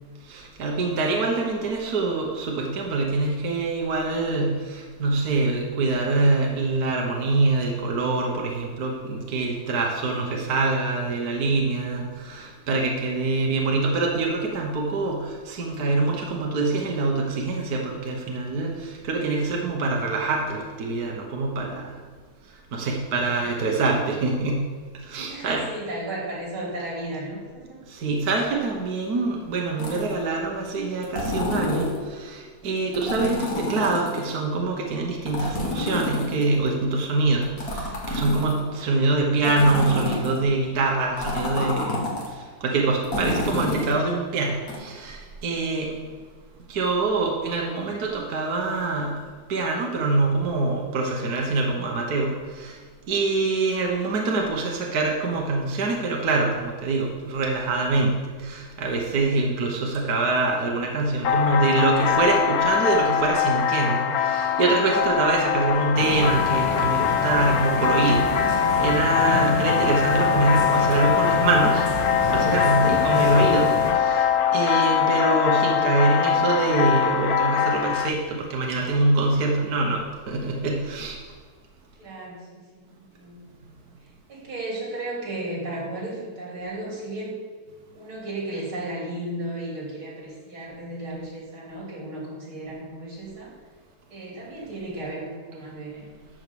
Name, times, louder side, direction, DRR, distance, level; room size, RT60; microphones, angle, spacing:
voice 1, 0.3-21.9 22.7-24.6 25.0-25.6 27.9-42.0 42.3-45.9 46.7-49.1 49.5-52.8 53.1-71.9 72.3-74.3 74.5-81.2, right 3 dB, 50° right, 0 dB, 1.5 m, -24 dB
voice 2, 23.3-23.7 25.3-27.8 46.0-46.1 79.8-80.0 82.0-83.4 84.3-87.4 87.9-93.5 94.1-96.1, right 1 dB, 75° right, -4 dB, 3.8 m, -34 dB
sound 1, 29.8-30.2 31.0-32.0 32.9-34.3 35.3-36.7 37.4-38.7 39.4-40.4 41.2-42.3 43.0-44.0 44.7-44.8, left 1 dB, 45° left, 2.2 m, -28 dB
sound 2, 61.2-78.1, left 8 dB, 70° left, 0.9 m, -22 dB
sound 3, 65.9-73.9, left 1 dB, 20° right, 2.2 m, -29 dB
12.0 x 4.6 x 6.9 m, 1.5 s
omnidirectional pair, 2.3 m